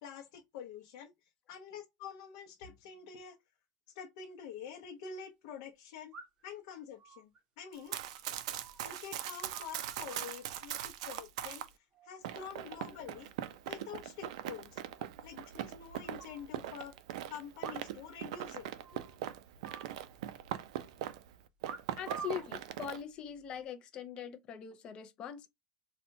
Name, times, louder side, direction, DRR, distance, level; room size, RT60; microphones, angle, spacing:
voice 1, 0.0-1.1 1.5-3.4 3.9-6.2 6.4-7.3 7.6-8.0 8.8-11.7 12.0-13.3 13.7-14.8 15.2-16.9 17.3-18.7, left 7 dB, 65° left, 0.7 m, -47 dB
sound 1, 4.3-4.4 6.1-6.6 7.0-9.0 9.3-10.3 11.1-11.6 11.9-12.3 12.7-13.3 13.5-13.6 13.9-14.0 14.2-14.3 14.6-14.7 15.4-16.5 17.5-18.2 18.4-18.5 18.8-19.2 19.6-20.6 21.6-22.5 23.2-23.6, right 5 dB, 25° right, 0.7 m, -50 dB
Run, 7.7-11.7 12.2-21.3 21.6-23.0, right 11 dB, 75° right, 0.4 m, -41 dB
voice 2, 22.0-25.5, left 9 dB, 25° left, 0.5 m, -42 dB
4.1 x 2.2 x 2.6 m
cardioid pair, 175°, 3 cm